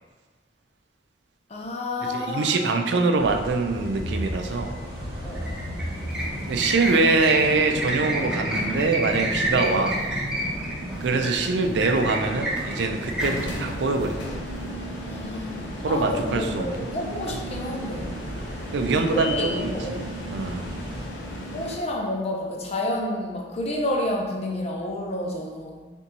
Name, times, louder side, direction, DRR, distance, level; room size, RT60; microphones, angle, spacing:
voice 1, 1.5-2.8 5.2-5.6 6.8-7.3 13.2-13.3 15.0-15.6 15.8-18.2 19.1-19.9 21.5-25.9, left 1 dB, 35° left, 0 dB, 0.6 m, -30 dB
voice 2, 2.0-4.8 6.5-10.0 11.0-14.3 15.8-16.9 17.3-17.4 18.7-20.0 20.3-20.6, right 3 dB, 75° right, 5 dB, 0.4 m, -24 dB
sound 1, 3.2-21.1, equal, 60° right, 0.8 m, -39 dB
sound 2, 3.7-21.8, equal, 85° left, 0.7 m, -36 dB
sound 3, 5.3-14.6, right 1 dB, 5° right, 0.7 m, -30 dB
4.0 x 3.5 x 2.9 m, 1.4 s
head